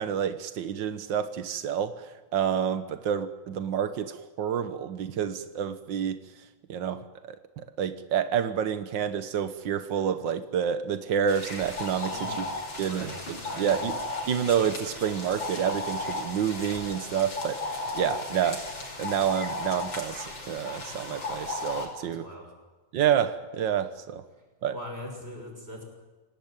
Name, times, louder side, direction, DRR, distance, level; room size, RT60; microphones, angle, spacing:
voice 1, 0.0-2.1 2.3-6.2 6.7-12.4 12.8-14.0 14.3-18.7 19.0-22.3 22.9-24.2 24.6-24.8, right 8 dB, 75° right, 11 dB, 1.0 m, -29 dB
sound 1, 11.3-21.9, left 2 dB, 35° left, 5.6 m, -35 dB
voice 2, 12.1-13.8 22.0-22.5 24.7-25.9, left 1 dB, 15° right, 2 dB, 6.6 m, -42 dB
27.5 x 18.5 x 9.0 m, 1.3 s
omnidirectional pair, 3.7 m